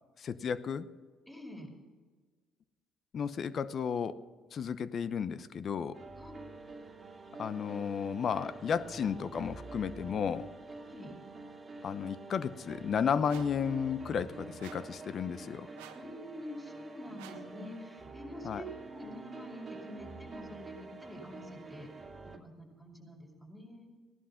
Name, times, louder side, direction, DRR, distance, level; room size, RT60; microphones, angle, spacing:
voice 1, 0.2-0.9 3.1-4.2 4.5-6.0 7.4-10.5 11.8-15.7 18.4-18.6, left 7 dB, 50° left, 14 dB, 0.8 m, -33 dB
voice 2, 1.3-1.7 6.1-6.3 10.8-11.2 15.9-21.9 22.2-23.9, equal, 15° left, 0 dB, 5.7 m, -47 dB
sound 1, 5.9-22.4, right 3 dB, 30° right, 2.2 m, -47 dB
sound 2, 13.3-13.6 14.6-15.0 15.7-16.1 17.2-17.5, right 10 dB, 90° right, 1.2 m, -51 dB
16.5 x 11.5 x 5.8 m, 1.4 s
supercardioid pair, 65°, 0 cm